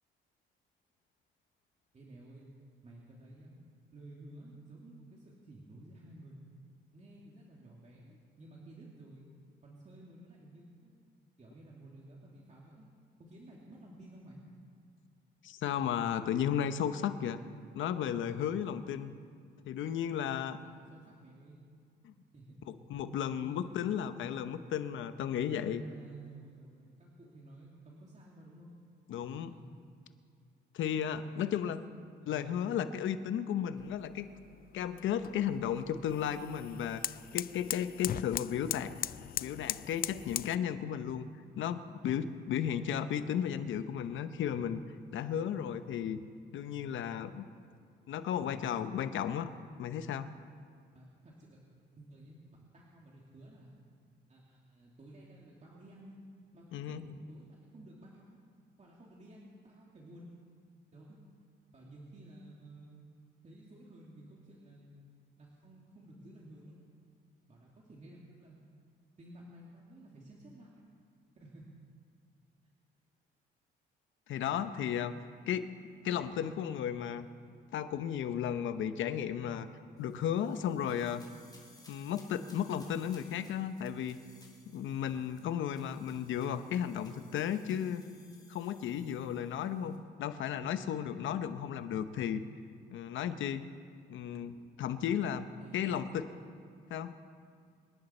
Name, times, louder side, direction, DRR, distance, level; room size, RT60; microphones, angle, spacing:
voice 1, 1.9-2.5 2.8-3.6 3.9-6.5 6.9-9.3 9.6-10.9 11.4-12.9 13.2-14.4 20.2-21.6 22.3-22.6 23.4-24.1 25.8-28.7 29.2-29.7 31.1-31.8 32.2-32.6 50.9-51.6 52.0-52.4 52.7-53.8 54.3-56.2 56.5-58.4 58.8-60.4 60.9-61.2 61.7-63.0 63.4-65.0 65.4-66.9 67.5-68.6 69.2-70.8 71.4-71.7 95.6-96.4, right 1 dB, 35° right, -3 dB, 2.5 m, -53 dB
voice 2, 15.4-17.4 17.7-19.1 19.6-20.6 22.0-22.1 22.9-25.8 29.1-29.5 30.7-31.8 32.3-34.3 34.7-37.0 37.3-38.9 39.4-41.3 41.6-44.8 45.1-46.2 46.5-47.5 48.1-49.5 49.8-50.3 56.7-57.1 74.3-75.1 75.4-75.7 76.0-77.3 77.7-79.7 80.0-81.2 81.9-84.2 84.7-88.0 88.5-92.4 92.9-93.6 94.1-96.2 96.9-97.1, left 9 dB, 75° left, 11 dB, 0.9 m, -34 dB
sound 1, 33.8-40.6, left 11 dB, 50° left, 0.4 m, -40 dB
sound 2, 80.0-90.0, left 2 dB, 20° left, 3.1 m, -62 dB
25.0 x 10.5 x 4.4 m, 2.3 s
cardioid pair, 90°, 20 cm